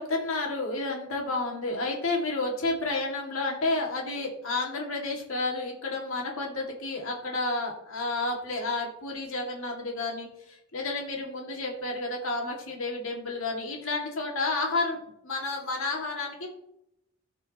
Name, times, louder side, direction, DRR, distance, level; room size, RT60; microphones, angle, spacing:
voice 1, 0.0-16.5, left 2 dB, 65° left, -1 dB, 2.5 m, -31 dB
16.0 x 5.5 x 3.1 m, 0.80 s
head